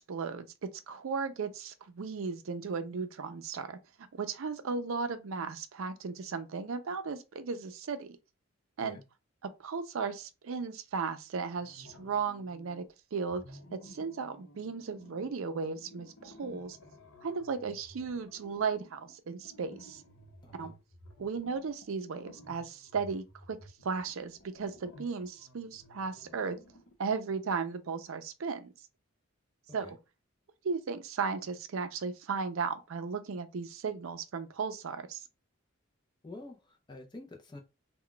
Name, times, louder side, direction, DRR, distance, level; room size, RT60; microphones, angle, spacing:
voice 1, 0.0-3.8 4.2-8.2 8.8-9.0 9.4-12.9 13.1-16.8 17.2-20.0 20.6-20.7 21.2-26.6 27.0-28.7 29.7-30.0 30.6-35.2, right 5 dB, 75° right, 0.5 m, -36 dB
sound 1, 11.5-12.9 13.2-27.1, equal, 70° left, 0.8 m, -55 dB
voice 2, 20.4-20.7 29.8-29.9 36.2-37.6, left 2 dB, 20° left, 0.5 m, -48 dB
2.2 x 2.2 x 3.8 m
head